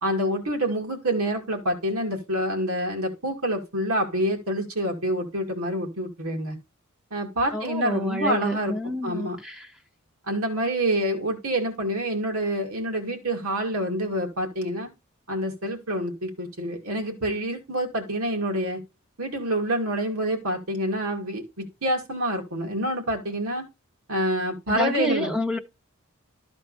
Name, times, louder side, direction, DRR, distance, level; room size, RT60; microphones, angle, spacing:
voice 1, 0.0-6.6 7.1-8.7 9.0-9.4 10.3-14.9 15.3-18.8 19.2-23.6 24.1-25.3, right 1 dB, 85° right, 2.5 m, -27 dB
voice 2, 7.5-9.7 24.7-25.6, left 1 dB, 5° right, 0.6 m, -29 dB
13.0 x 4.4 x 4.1 m
head